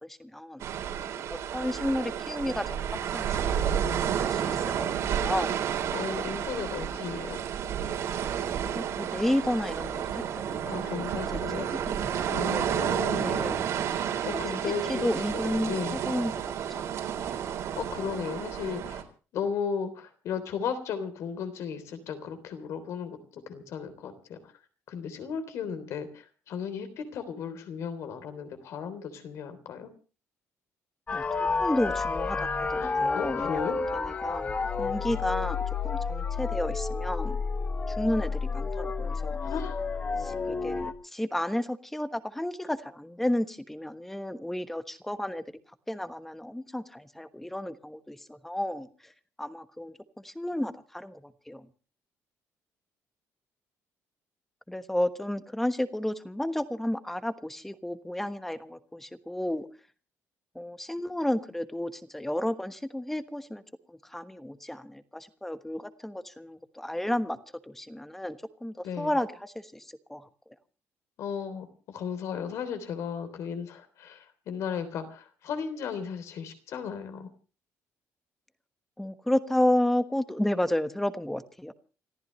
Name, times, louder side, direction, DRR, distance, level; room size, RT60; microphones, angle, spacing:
voice 1, 0.0-0.6 1.3-2.7 3.1-3.8 4.2-5.6 8.7-11.1 11.9-13.6 14.6-16.3 16.7-16.9 31.1-31.2 31.6-37.4 37.9-39.4 40.2-45.6 45.9-48.9 49.4-49.9 50.2-51.7 54.7-59.7 60.5-63.6 63.9-67.4 67.7-69.8 70.1-70.2 79.0-81.7, left 1 dB, 5° left, 10 dB, 1.2 m, -32 dB
sound 1, 0.6-19.0, right 9 dB, 70° right, 3.7 m, -31 dB
voice 2, 5.9-7.4 10.7-11.9 12.3-13.5 14.3-16.0 17.8-19.0 19.3-24.4 24.9-29.9 32.8-33.8 39.4-39.8 68.8-69.1 71.2-77.3, left 7 dB, 70° left, 10 dB, 3.5 m, -35 dB
sound 2, 31.1-40.9, left 4 dB, 25° left, 1.3 m, -30 dB
29.0 x 14.5 x 3.2 m, 0.36 s
cardioid pair, 145°, 5 cm